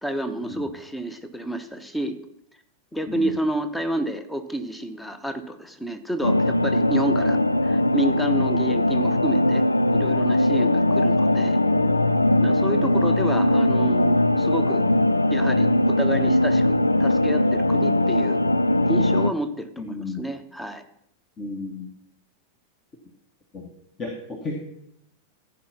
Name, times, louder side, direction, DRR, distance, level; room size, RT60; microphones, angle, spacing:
voice 1, 0.0-2.2 2.9-9.6 9.9-11.6 12.4-14.9 15.3-18.4 18.9-20.8, right 1 dB, 5° left, 10 dB, 1.0 m, -30 dB
sound 1, 6.2-19.3, left 1 dB, 85° left, 0.3 m, -20 dB
voice 2, 19.8-20.2 21.4-21.9 23.5-23.7 24.0-24.6, left 3 dB, 25° left, 2 dB, 1.5 m, -33 dB
15.0 x 5.2 x 5.8 m, 0.75 s
figure-of-eight pair, 90°, 0 cm